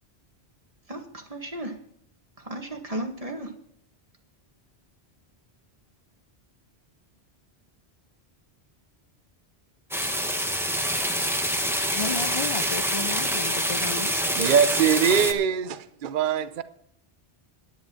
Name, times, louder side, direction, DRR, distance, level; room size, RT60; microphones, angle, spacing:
voice 1, 0.9-1.7 2.4-3.5, right 1 dB, 35° right, 1.9 m, -34 dB
sound 1, 9.9-15.3, equal, ahead, 1.1 m, -26 dB
voice 2, 11.9-14.1, left 4 dB, 40° left, 0.4 m, -33 dB
voice 3, 14.3-16.6, right 8 dB, 55° right, 0.8 m, -22 dB
10.5 x 10.0 x 5.7 m
omnidirectional pair, 1.1 m